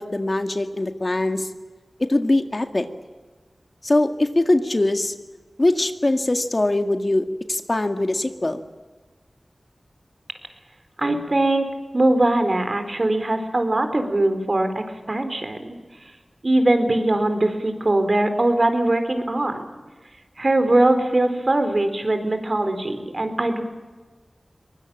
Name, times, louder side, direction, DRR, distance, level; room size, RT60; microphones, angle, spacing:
voice 1, 0.0-1.5 2.0-2.9 3.8-5.1 5.6-8.6, left 2 dB, 45° left, 8 dB, 1.9 m, -22 dB
voice 2, 11.0-11.6 11.9-15.6 16.4-19.6 20.4-23.6, right 1 dB, 50° right, 8 dB, 4.1 m, -21 dB
23.5 x 20.0 x 8.7 m, 1.3 s
cardioid pair, 40°, 0 cm